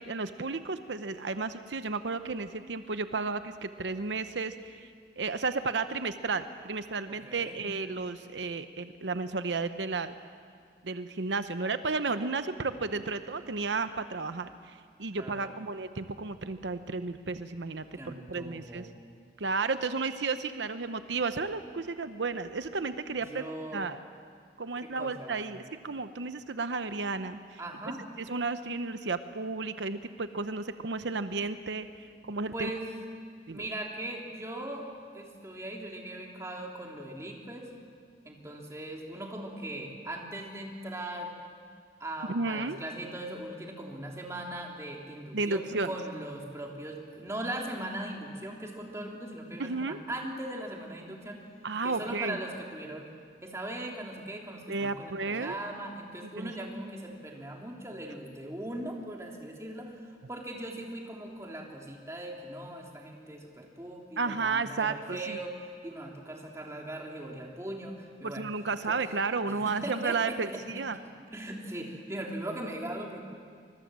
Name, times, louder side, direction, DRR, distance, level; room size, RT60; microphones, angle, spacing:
voice 1, 0.0-4.9 5.2-10.1 10.8-18.9 19.4-23.4 23.7-24.0 24.6-27.6 28.3-31.9 32.2-32.7 33.5-33.7 42.3-42.8 45.3-45.9 49.6-50.0 51.6-52.4 54.7-55.6 56.4-56.5 64.2-65.4 68.2-71.0, right 4 dB, 85° right, 10 dB, 0.8 m, -33 dB
voice 2, 7.2-7.6 15.2-15.6 17.9-19.0 23.2-23.9 24.8-25.5 27.6-28.0 32.5-32.9 33.5-34.9 35.1-37.7 38.2-41.3 42.0-51.5 51.8-53.1 53.4-65.6 65.8-68.5 68.9-69.1 69.6-70.6 71.0-73.2, right 1 dB, 15° right, 0 dB, 2.9 m, -39 dB
25.0 x 21.5 x 7.5 m, 2.1 s
head